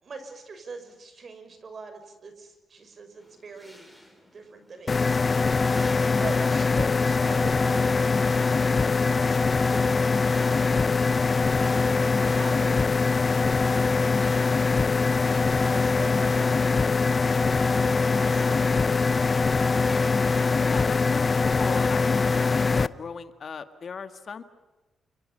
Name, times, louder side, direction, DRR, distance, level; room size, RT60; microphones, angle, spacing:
voice 1, 0.0-3.9 4.3-11.2 11.6-14.7 15.3-16.9 17.3-19.9, right 4 dB, 50° right, 7 dB, 6.2 m, -43 dB
sound 1, 3.2-22.5, equal, 5° right, 6.4 m, -52 dB
sound 2, 4.9-22.9, left 4 dB, 35° left, 0.7 m, -23 dB
voice 2, 20.5-24.4, left 5 dB, 50° left, 9 dB, 1.8 m, -37 dB
28.5 x 26.5 x 5.6 m, 1.1 s
cardioid pair, 85°, 0 cm